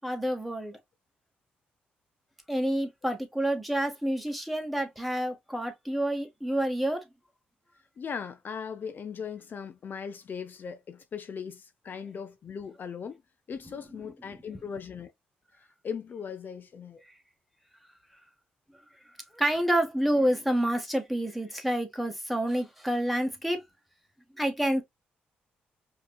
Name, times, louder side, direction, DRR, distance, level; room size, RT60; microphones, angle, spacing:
voice 1, 0.0-0.8 2.5-7.0 19.4-23.6 24.4-24.8, right 1 dB, ahead, 1.4 m, -28 dB
voice 2, 8.0-13.2 13.5-15.1 15.6-17.0, left 6 dB, 55° left, 0.4 m, -39 dB
5.0 x 2.9 x 2.3 m
supercardioid pair, 55°, 4 cm